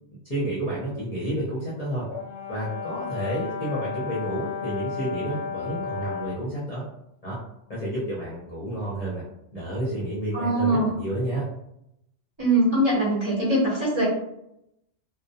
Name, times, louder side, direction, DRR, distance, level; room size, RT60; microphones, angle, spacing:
voice 1, 0.2-2.1 2.5-6.8 7.2-7.4 7.7-9.2 9.5-11.5, right 1 dB, 40° left, -7 dB, 0.7 m, -30 dB
Brass instrument, 2.1-6.5, left 6 dB, 80° left, 0.9 m, -33 dB
voice 2, 10.3-11.0 12.4-14.1, right 1 dB, 30° right, -7 dB, 0.7 m, -22 dB
2.2 x 2.1 x 2.7 m, 0.79 s
omnidirectional pair, 1.2 m